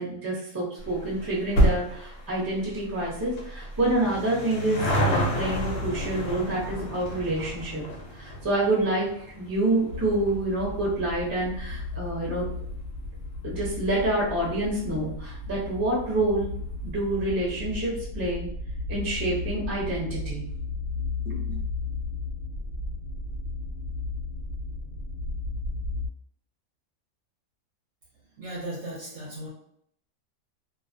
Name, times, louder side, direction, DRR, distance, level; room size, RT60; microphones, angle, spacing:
voice 1, 0.0-7.8 8.1-9.1 9.4-12.5 13.4-16.5 16.8-18.5 18.9-20.4 21.2-21.6, right 1 dB, 20° right, -6 dB, 0.7 m, -27 dB
sound 1, 0.8-13.5 13.8-13.9 14.8-14.9 15.1-15.2 15.5-15.6, equal, 60° left, 0.8 m, -30 dB
sound 2, 9.9-26.1, left 3 dB, 85° left, 1.0 m, -34 dB
voice 2, 28.4-29.5, right 1 dB, 65° right, -4 dB, 0.8 m, -36 dB
2.4 x 2.1 x 2.5 m, 0.69 s
omnidirectional pair, 1.5 m